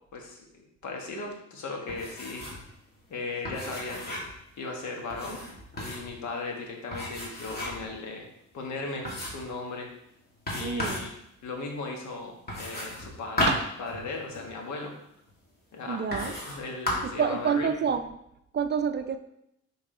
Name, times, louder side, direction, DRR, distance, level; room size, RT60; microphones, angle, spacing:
voice 1, 0.1-2.5 3.1-4.2 4.6-5.4 5.8-8.3 8.5-9.9 10.5-11.1 11.4-13.5 13.8-14.9 15.7-17.7, left 3 dB, 70° left, 1 dB, 1.4 m, -37 dB
sound 1, 1.9-2.7 2.9-3.0 3.4-4.4 5.1-6.1 6.9-7.9 8.4-8.5 9.0-9.5 10.5-11.1 12.5-14.5 15.3-15.4 16.1-16.6 16.9-17.2, left 1 dB, 30° left, 2.4 m, -33 dB
voice 2, 10.6-11.1 13.5-13.6 15.9-16.3 17.0-18.0 18.5-19.2, right 7 dB, 35° right, 9 dB, 0.5 m, -28 dB
6.5 x 3.8 x 3.7 m, 0.78 s
cardioid pair, 90°, 30 cm